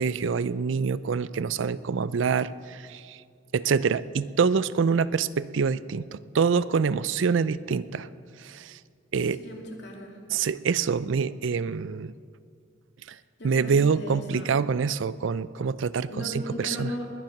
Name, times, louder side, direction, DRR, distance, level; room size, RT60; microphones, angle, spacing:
voice 1, 0.0-3.2 3.5-8.1 8.5-8.7 9.1-9.4 10.3-12.1 13.4-16.1 16.6-16.9, right 5 dB, 75° right, 17 dB, 0.4 m, -25 dB
voice 2, 9.3-10.2 13.4-14.6 16.1-17.1, left 1 dB, 60° left, 0 dB, 2.6 m, -37 dB
20.5 x 10.5 x 5.9 m, 2.3 s
head